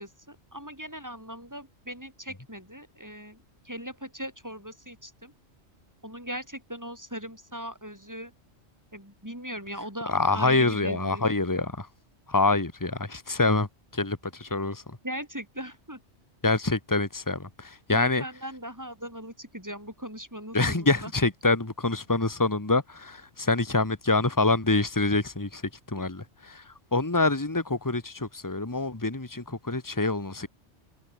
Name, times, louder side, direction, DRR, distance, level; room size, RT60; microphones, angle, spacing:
voice 1, 0.0-5.3 6.0-8.3 8.9-11.2 15.0-16.0 17.9-21.1 26.0-26.1, equal, 15° right, 7.2 m, -39 dB
voice 2, 10.1-11.9 12.3-15.0 16.4-18.2 20.5-25.6 25.9-30.5, left 3 dB, 15° left, 1.9 m, -26 dB
omnidirectional pair, 1.2 m